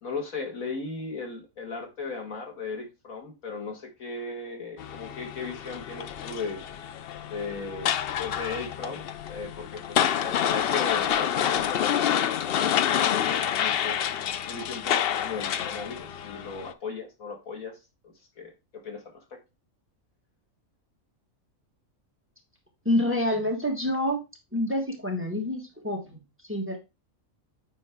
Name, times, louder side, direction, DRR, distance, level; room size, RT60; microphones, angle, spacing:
voice 1, 0.0-6.6 7.3-7.9 8.2-14.0 14.5-17.8 18.0-19.4, left 4 dB, 90° left, 3 dB, 2.1 m, -37 dB
sound 1, 4.8-16.7, left 9 dB, 65° left, 0.6 m, -28 dB
voice 2, 22.8-24.2 24.5-26.2 26.5-26.8, left 1 dB, 10° right, 2 dB, 1.4 m, -27 dB
8.9 x 4.4 x 3.5 m, 0.26 s
omnidirectional pair, 1.4 m